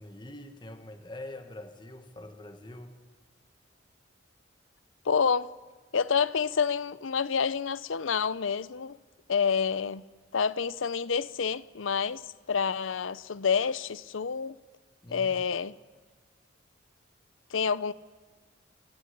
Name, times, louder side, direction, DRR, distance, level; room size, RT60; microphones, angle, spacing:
voice 1, 0.0-3.0 15.0-15.4, left 1 dB, 25° left, 1.5 m, -44 dB
voice 2, 5.0-5.5 5.9-9.0 9.3-10.0 10.3-14.6 15.1-15.7 17.5-17.9, left 6 dB, 85° left, 0.6 m, -28 dB
26.5 x 15.0 x 9.9 m
head